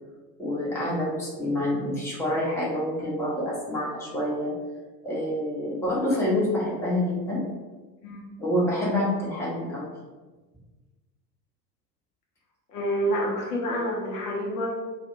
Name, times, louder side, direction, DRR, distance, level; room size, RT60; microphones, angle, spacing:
voice 1, 0.4-4.5 5.0-7.4 8.4-9.9, left 1 dB, 5° left, -6 dB, 0.7 m, -27 dB
voice 2, 12.7-14.7, equal, 70° left, -3 dB, 0.9 m, -28 dB
2.4 x 2.3 x 2.8 m, 1.3 s
figure-of-eight pair, 75°, 49 cm